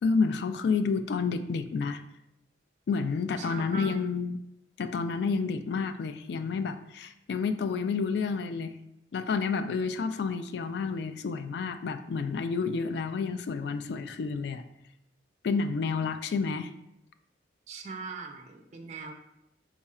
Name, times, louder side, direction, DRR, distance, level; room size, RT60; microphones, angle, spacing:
voice 1, 0.0-2.0 2.9-4.4 4.8-8.7 9.1-14.7 15.4-16.7, left 5 dB, 70° left, 10 dB, 0.3 m, -30 dB
voice 2, 3.4-4.0 17.7-19.1, right 5 dB, 40° right, 4 dB, 0.4 m, -40 dB
4.8 x 2.4 x 4.1 m, 0.83 s
head